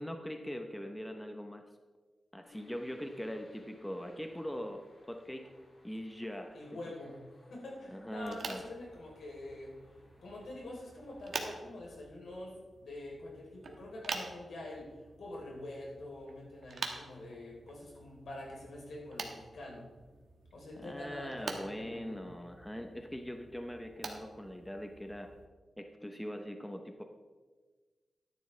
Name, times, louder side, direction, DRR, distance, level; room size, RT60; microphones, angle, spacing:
voice 1, 0.0-1.6 2.3-4.8 5.1-5.5 5.8-6.9 7.9-8.7 20.8-25.3 25.8-27.0, equal, 5° left, 5 dB, 0.7 m, -42 dB
sound 1, 2.4-11.5, left 1 dB, 35° left, 2.8 m, -62 dB
voice 2, 6.5-9.7 10.2-19.9 20.5-22.2, left 1 dB, 80° left, -2 dB, 3.4 m, -46 dB
sound 2, 8.2-25.5, right 4 dB, 65° right, 1.3 m, -47 dB
13.0 x 10.5 x 3.2 m, 1.4 s
wide cardioid pair, 130°, 0 cm